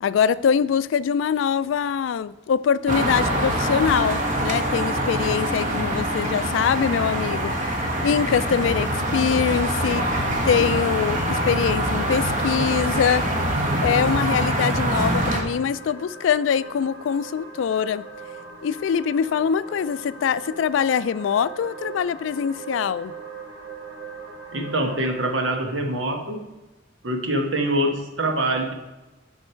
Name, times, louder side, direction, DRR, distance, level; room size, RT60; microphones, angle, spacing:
voice 1, 0.0-10.2 10.4-13.3 13.8-18.1 18.6-23.1, left 7 dB, 85° left, 0.3 m, -23 dB
sound 1, 2.9-15.4, right 1 dB, 45° right, 1.2 m, -24 dB
sound 2, 9.1-25.5, right 3 dB, 70° right, 1.7 m, -41 dB
voice 2, 24.5-26.4 27.0-28.7, right 1 dB, 90° right, 1.2 m, -24 dB
9.8 x 5.4 x 4.4 m
head